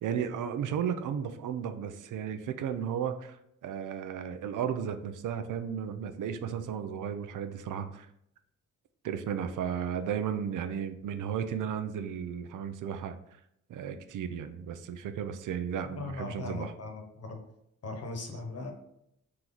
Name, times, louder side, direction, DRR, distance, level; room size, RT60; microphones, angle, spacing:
voice 1, 0.0-8.1 9.0-13.2 13.7-16.7, right 8 dB, 85° right, 9 dB, 0.5 m, -34 dB
voice 2, 15.8-17.4 17.8-18.7, left 3 dB, 50° left, 3 dB, 1.1 m, -39 dB
3.8 x 3.0 x 3.9 m, 0.76 s
cardioid pair, 115°, 31 cm